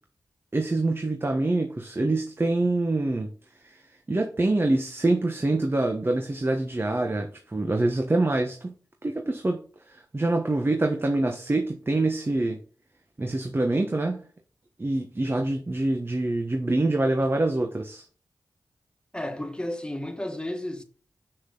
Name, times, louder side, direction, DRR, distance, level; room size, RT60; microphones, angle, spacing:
voice 1, 0.5-3.3 3.6-8.7 9.0-12.6 13.2-14.3 14.8-18.0, right 2 dB, 35° right, 1.2 m, -25 dB
voice 2, 19.1-20.8, left 1 dB, 10° left, 1.7 m, -32 dB
6.6 x 6.1 x 4.0 m
cardioid pair, 45°, 7 cm